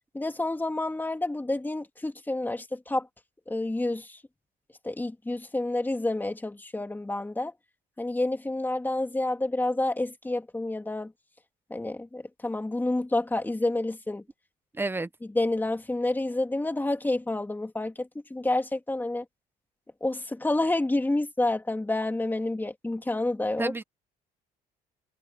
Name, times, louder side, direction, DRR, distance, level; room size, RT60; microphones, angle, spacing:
voice 1, 0.1-3.1 3.5-4.2 4.8-7.5 8.0-11.1 11.7-14.2 15.3-19.2 20.0-23.7, left 2 dB, 10° left, 2.5 m, -29 dB
voice 2, 14.7-15.1 23.6-23.8, right 2 dB, 10° right, 1.0 m, -30 dB
cardioid pair, 110°, 17 cm